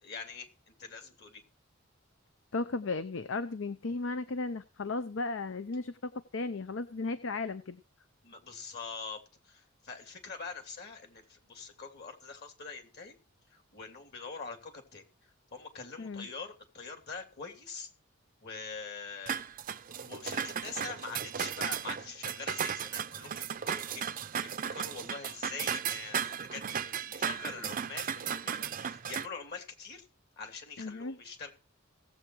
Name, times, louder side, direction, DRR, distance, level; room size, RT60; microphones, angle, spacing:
voice 1, 0.0-1.4 8.2-13.1 13.5-15.0 15.5-17.9 18.4-19.3 20.0-30.1 30.4-31.5, left 4 dB, 55° left, 5 dB, 3.0 m, -44 dB
voice 2, 2.5-7.8 16.0-16.3 30.8-31.2, left 3 dB, 70° left, 12 dB, 0.7 m, -35 dB
sound 1, 19.3-29.3, right 8 dB, 45° right, 0.6 m, -35 dB
17.5 x 7.9 x 4.7 m, 0.34 s
head